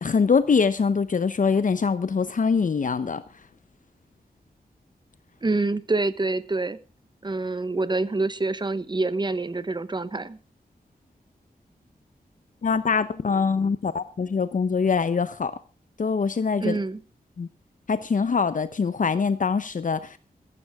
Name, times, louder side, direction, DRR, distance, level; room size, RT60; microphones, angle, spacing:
voice 1, 0.0-3.2 12.6-15.6 16.0-16.8 17.4-17.5 17.9-20.2, left 5 dB, 55° left, 13 dB, 0.8 m, -23 dB
voice 2, 5.4-6.8 7.2-10.4 16.6-17.0, right 3 dB, 30° right, 15 dB, 1.0 m, -26 dB
15.0 x 14.5 x 3.6 m, 0.33 s
wide cardioid pair, 100°, 16 cm